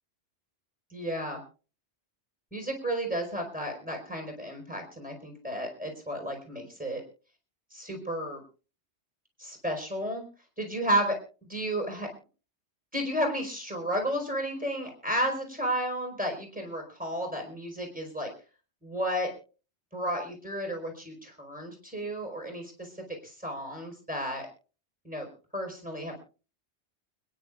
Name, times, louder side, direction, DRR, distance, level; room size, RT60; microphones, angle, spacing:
voice 1, 0.9-1.4 2.5-7.0 7.7-8.4 9.4-10.2 10.6-11.2 11.5-12.1 12.9-18.3 18.8-19.3 19.9-24.5 25.0-25.3 25.5-26.2, equal, 5° right, 1 dB, 4.6 m, -32 dB
29.0 x 10.0 x 2.4 m, 0.36 s
omnidirectional pair, 1.1 m